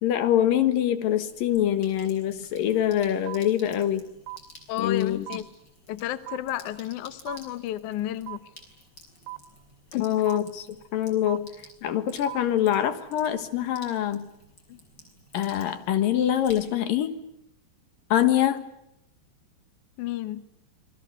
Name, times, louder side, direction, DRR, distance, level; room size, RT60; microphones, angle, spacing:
voice 1, 0.0-4.0 4.8-5.3 10.0-10.7 10.9-11.5 11.8-14.3 15.3-17.2 18.1-18.7, left 11 dB, 60° left, 10 dB, 2.8 m, -24 dB
Sink (filling or washing), 1.0-17.0, left 1 dB, 20° left, 6.2 m, -53 dB
sound 1, 3.3-3.4 4.3-4.4 5.3-5.4 6.3-6.4 7.3-7.4 8.3-8.4 9.3-9.4 10.3-10.4 11.3-11.4 12.3-12.4, right 21 dB, 75° right, 4.0 m, -36 dB
voice 2, 4.7-5.4 5.9-8.4 9.9-10.1 14.7-14.8 20.0-20.4, left 13 dB, 80° left, 12 dB, 1.7 m, -32 dB
28.0 x 22.0 x 8.1 m, 0.81 s
omnidirectional pair, 5.2 m